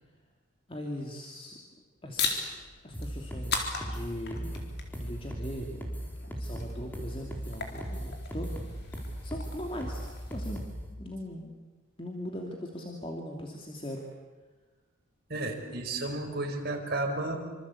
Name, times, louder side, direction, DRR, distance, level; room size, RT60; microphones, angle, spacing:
voice 1, 0.7-1.6 2.0-2.4 2.8-4.6 4.9-6.0 6.3-10.0 10.3-10.6 10.9-11.5 12.0-14.0, equal, 25° left, 1 dB, 2.7 m, -40 dB
sound 1, 2.1-10.5, left 4 dB, 55° left, 3.9 m, -39 dB
sound 2, 2.9-10.8, equal, 10° left, 4.1 m, -37 dB
voice 2, 15.3-17.4, right 2 dB, 50° right, 1 dB, 4.9 m, -32 dB
26.5 x 26.0 x 8.5 m, 1.3 s
head